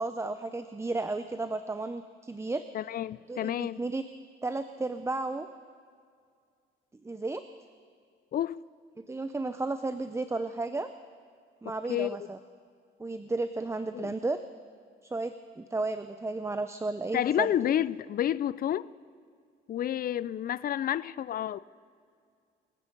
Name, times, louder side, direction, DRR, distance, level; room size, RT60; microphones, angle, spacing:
voice 1, 0.0-2.6 3.3-4.0 4.4-5.5 7.0-7.4 9.0-10.9 11.6-12.4 13.0-14.4 15.1-17.5, right 3 dB, 15° right, 10 dB, 0.5 m, -33 dB
voice 2, 2.7-3.8 8.3-8.6 11.9-12.2 13.9-14.1 17.1-18.9 19.7-21.6, left 11 dB, 50° left, 18 dB, 0.4 m, -30 dB
26.5 x 8.9 x 5.2 m, 2.2 s
cardioid pair, 90°, 20 cm